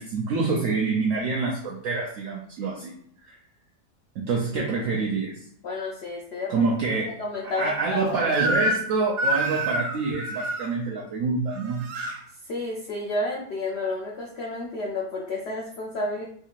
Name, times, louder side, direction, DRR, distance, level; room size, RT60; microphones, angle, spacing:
voice 1, 0.0-2.9 3.2-3.4 4.2-5.4 6.5-7.2 7.6-11.8, right 4 dB, 70° right, -1 dB, 0.8 m, -26 dB
voice 2, 4.5-4.8 5.6-6.7 7.2-8.3 12.4-16.2, left 2 dB, 85° left, -2 dB, 0.5 m, -31 dB
Crying sobbing / Screech, 8.3-8.9 9.2-10.7 11.5-12.2, right 1 dB, 85° right, 1.2 m, -27 dB
3.6 x 2.8 x 2.4 m, 0.63 s
omnidirectional pair, 1.7 m